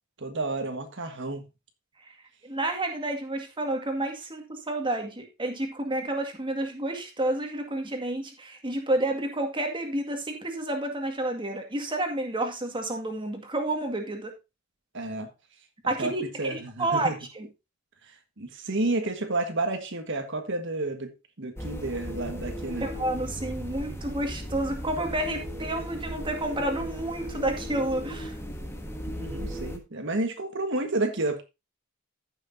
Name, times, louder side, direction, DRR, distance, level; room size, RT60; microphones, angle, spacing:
voice 1, 0.2-1.4 14.9-15.3 16.0-17.1 18.0-22.9 29.0-31.4, right 2 dB, 55° right, 1.6 m, -31 dB
voice 2, 2.4-14.3 15.9-16.2 16.5-17.5 22.8-28.3, right 1 dB, 20° right, 2.0 m, -30 dB
sound 1, 21.6-29.8, equal, 10° left, 1.5 m, -36 dB
15.0 x 6.4 x 2.7 m
head